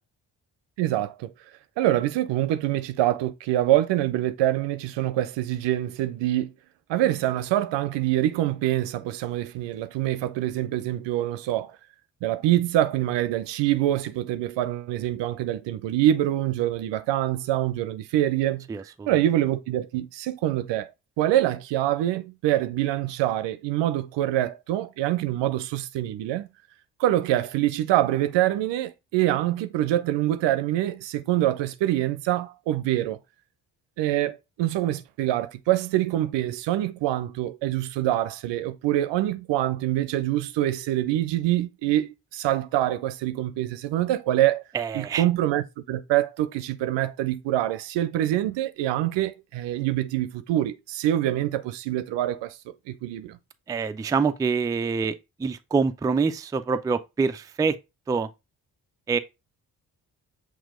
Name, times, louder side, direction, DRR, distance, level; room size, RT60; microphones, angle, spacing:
voice 1, 0.8-1.3 1.8-6.5 6.9-11.7 12.2-18.7 19.1-20.9 21.2-26.5 27.0-33.2 34.0-44.6 44.9-53.4, right 13 dB, 65° right, 0.6 m, -25 dB
voice 2, 18.7-19.1 44.7-45.2 53.7-55.1 55.4-57.8 58.1-58.3 59.1-59.2, right 5 dB, 10° right, 0.3 m, -25 dB
6.0 x 2.4 x 3.6 m
hypercardioid pair, 40°, 46 cm